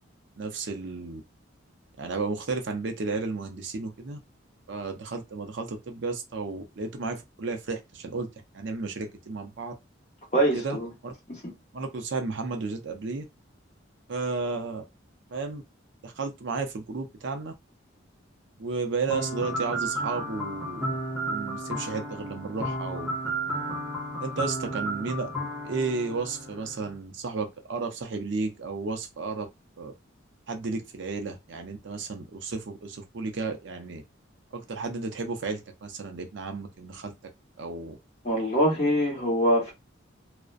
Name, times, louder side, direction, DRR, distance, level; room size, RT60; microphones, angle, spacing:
voice 1, 0.4-1.2 2.0-4.2 4.7-8.3 8.5-9.7 10.5-10.8 11.0-11.1 11.7-13.2 14.1-14.8 15.3-15.6 16.0-17.5 18.6-20.9 21.3-23.3 24.2-25.3 25.6-29.5 29.8-29.9 30.5-34.0 34.5-37.1 37.6-38.0, right 4 dB, 65° right, 0.5 m, -33 dB
voice 2, 10.3-10.9 11.3-11.5 38.2-39.7, equal, 35° left, 1.0 m, -24 dB
sound 1, 19.1-26.9, right 1 dB, ahead, 0.6 m, -33 dB
2.4 x 2.1 x 2.4 m
head